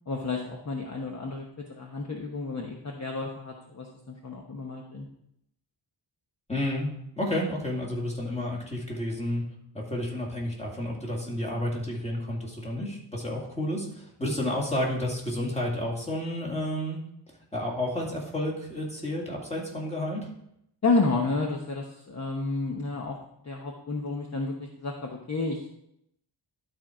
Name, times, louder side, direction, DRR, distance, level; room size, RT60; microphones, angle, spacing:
voice 1, 0.1-5.1 20.8-23.2 23.4-25.7, left 3 dB, 35° left, 0 dB, 1.1 m, -31 dB
voice 2, 6.5-6.9 7.2-9.4 9.7-17.0 17.5-20.3, left 1 dB, 15° left, -2 dB, 2.2 m, -31 dB
12.0 x 4.5 x 5.0 m, 0.75 s
wide cardioid pair, 135°, 47 cm